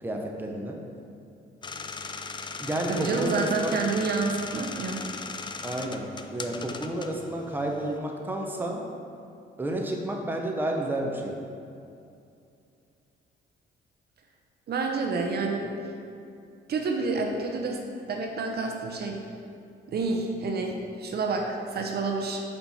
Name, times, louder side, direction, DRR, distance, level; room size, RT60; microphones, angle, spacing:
voice 1, 0.0-0.8 2.6-3.7 5.6-8.8 9.6-11.4, right 1 dB, 10° right, 1 dB, 0.7 m, -31 dB
sound 1, 1.6-8.0, left 4 dB, 25° left, 0.3 m, -38 dB
voice 2, 2.9-5.0 14.7-15.7 16.7-17.8 18.1-19.2 19.9-22.4, right 3 dB, 55° right, 2 dB, 0.7 m, -28 dB
5.5 x 4.2 x 4.4 m, 2.5 s
cardioid pair, 90°, 20 cm